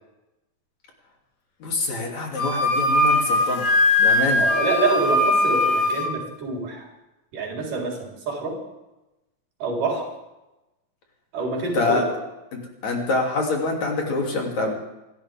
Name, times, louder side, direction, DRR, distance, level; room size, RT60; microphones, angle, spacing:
voice 1, 1.6-3.7 4.0-4.4 11.7-12.0 12.8-14.7, left 3 dB, 55° left, 0 dB, 4.0 m, -25 dB
Wind instrument woodwind instrument, 2.4-6.1, left 2 dB, 75° left, 4.4 m, -20 dB
voice 2, 4.4-6.9 7.3-8.6 9.6-10.1 11.3-12.2, right 3 dB, 70° right, -1 dB, 5.6 m, -26 dB
27.5 x 13.0 x 3.5 m, 0.98 s
omnidirectional pair, 3.9 m